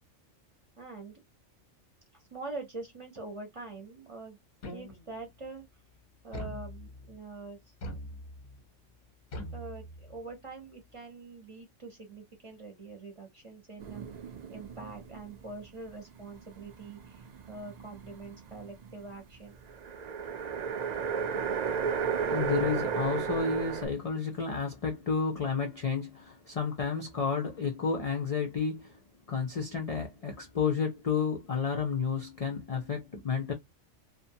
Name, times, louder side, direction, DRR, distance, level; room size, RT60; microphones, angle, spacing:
voice 1, 0.8-1.2 2.3-4.4 4.7-5.6 6.2-7.6 9.5-19.5, right 3 dB, 30° right, 0.6 m, -44 dB
sound 1, 4.6-5.3 6.3-7.2 7.8-8.6 9.3-10.3, left 1 dB, 45° left, 0.7 m, -42 dB
sound 2, 13.8-15.6 15.9-19.1 19.7-23.9, right 6 dB, 70° right, 0.4 m, -34 dB
voice 2, 22.0-29.0 29.3-33.5, left 5 dB, 65° left, 0.3 m, -31 dB
2.6 x 2.1 x 2.7 m
omnidirectional pair, 1.3 m